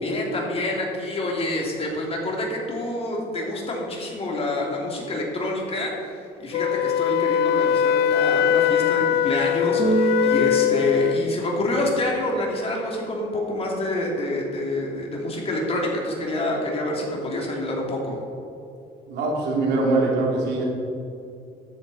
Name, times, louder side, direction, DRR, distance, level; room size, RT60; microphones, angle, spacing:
voice 1, 0.0-6.1 6.4-18.2, left 1 dB, 35° left, -2 dB, 2.7 m, -27 dB
Wind instrument woodwind instrument, 6.5-11.3, left 9 dB, 75° left, 0.4 m, -21 dB
Keyboard (musical), 9.8-11.9, right 4 dB, 50° right, 1.5 m, -27 dB
voice 2, 19.1-20.6, right 3 dB, 80° right, -2 dB, 2.6 m, -22 dB
14.0 x 7.5 x 4.1 m, 2.6 s
cardioid pair, 110°, 17 cm